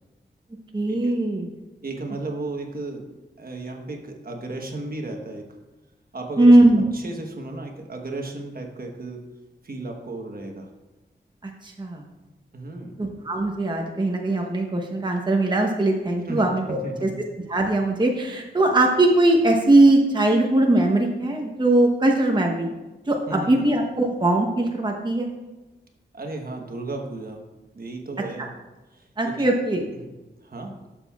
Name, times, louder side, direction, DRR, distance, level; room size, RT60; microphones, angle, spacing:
voice 1, 0.7-1.5 6.4-6.8 11.6-12.0 13.0-17.1 17.5-22.7 23.1-25.3 28.4-28.5 29.2-29.8, right 2 dB, 25° right, 1 dB, 0.9 m, -20 dB
voice 2, 1.8-3.0 3.4-5.4 6.1-6.5 6.9-9.2 9.6-10.7 12.5-13.0 16.3-16.4 16.8-16.9 23.3-23.5 26.1-27.4 27.7-28.5 28.9-29.4 30.4-30.7, right 2 dB, 55° right, 2 dB, 1.1 m, -34 dB
11.5 x 7.2 x 2.4 m, 1.1 s
wide cardioid pair, 110°, 19 cm